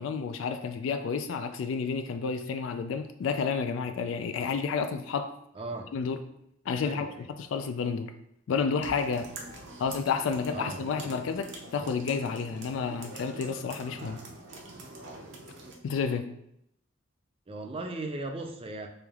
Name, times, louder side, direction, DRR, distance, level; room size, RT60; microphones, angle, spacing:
voice 1, 0.0-5.3 5.9-6.3 6.7-8.1 8.5-9.3 9.8-14.2 15.8-16.3, left 5 dB, 75° left, 0.3 m, -30 dB
voice 2, 5.6-5.9 6.8-7.2 10.5-10.8 17.5-18.9, right 2 dB, 30° right, 0.5 m, -37 dB
sound 1, 8.8-15.7, right 2 dB, 65° right, 0.7 m, -44 dB
3.3 x 2.9 x 3.4 m
head